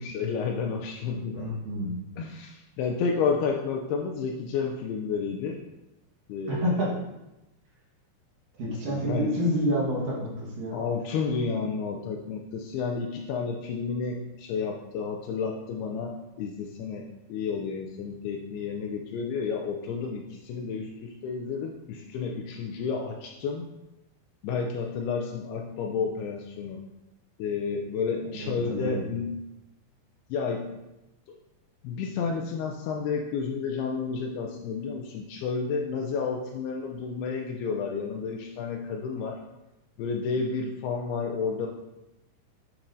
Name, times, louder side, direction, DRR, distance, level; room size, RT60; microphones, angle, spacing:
voice 1, 0.0-1.5 2.2-5.6 6.3-7.0 8.9-9.4 10.7-23.7 24.4-26.8 27.4-29.4 30.3-30.7 31.3-31.4 31.8-39.4 40.0-41.7, left 5 dB, 80° left, 1 dB, 2.3 m, -31 dB
voice 2, 1.3-2.0 6.5-6.9 8.6-10.8 28.2-29.0, equal, 60° right, -5 dB, 2.8 m, -29 dB
8.0 x 7.2 x 2.6 m, 0.96 s
omnidirectional pair, 4.9 m